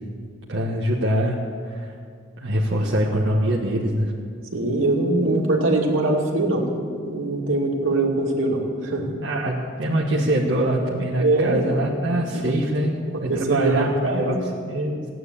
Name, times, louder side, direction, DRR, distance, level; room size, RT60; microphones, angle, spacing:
voice 1, 0.5-1.4 1.7-1.9 2.4-4.1 9.2-12.9 13.2-15.1, right 1 dB, 65° right, -4 dB, 1.5 m, -23 dB
voice 2, 4.5-6.6 7.0-9.1 11.2-11.6 12.3-12.4 13.3-14.4, right 2 dB, 80° right, 0 dB, 2.5 m, -22 dB
16.0 x 9.4 x 8.3 m, 2.2 s
head